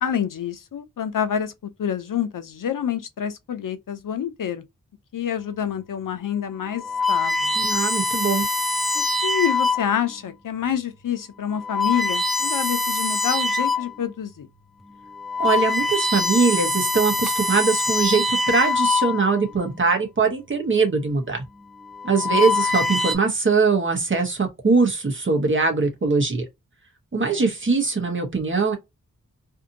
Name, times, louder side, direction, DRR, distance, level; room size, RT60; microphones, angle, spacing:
voice 1, 0.0-1.5 1.8-4.6 5.1-7.6 8.9-14.5 22.3-22.4 27.1-27.5, left 8 dB, 75° left, 0.6 m, -27 dB
sound 1, 5.8-6.0 6.7-10.1 10.7-11.0 11.5-14.0 14.4-14.6 15.1-19.5 20.5-20.9 21.8-23.1, left 3 dB, ahead, 0.4 m, -24 dB
voice 2, 7.6-8.5 15.4-21.4 22.0-26.4 27.1-28.8, right 4 dB, 35° right, 1.0 m, -21 dB
2.7 x 2.5 x 2.5 m
wide cardioid pair, 105°, 32 cm